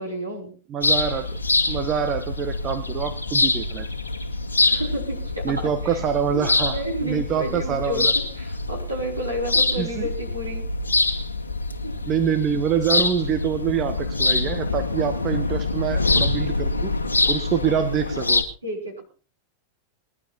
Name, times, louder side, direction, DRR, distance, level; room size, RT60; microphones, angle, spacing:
voice 1, 0.0-0.5 4.6-6.0 6.3-8.1 8.4-10.6 11.8-11.9 18.6-19.0, equal, 80° right, 0 dB, 5.7 m, -31 dB
voice 2, 0.7-1.4 1.7-3.9 5.4-8.1 9.8-10.1 12.1-16.9 17.3-18.4, right 8 dB, 30° right, 10 dB, 1.4 m, -26 dB
sound 1, 0.8-18.4, left 3 dB, 75° left, 2.0 m, -25 dB
21.0 x 11.5 x 4.3 m, 0.37 s
figure-of-eight pair, 90°, 0 cm